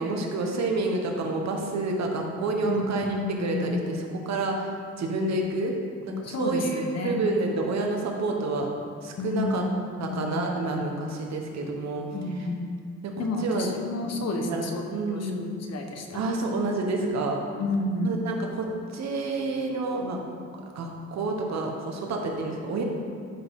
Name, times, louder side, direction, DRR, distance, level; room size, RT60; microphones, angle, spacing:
voice 1, 0.0-4.7 5.0-5.7 6.0-8.7 9.0-9.6 10.0-12.0 12.3-12.5 13.0-13.7 14.1-15.5 16.1-17.4 18.0-20.2 20.7-22.8, right 2 dB, 60° right, 1 dB, 1.4 m, -29 dB
voice 2, 2.7-3.9 6.2-7.2 9.2-9.7 10.0-10.4 12.1-12.7 13.2-14.8 15.1-16.2 17.6-18.2, left 2 dB, 60° left, 3 dB, 1.1 m, -30 dB
12.0 x 4.9 x 3.8 m, 2.1 s
cardioid pair, 90°, 30 cm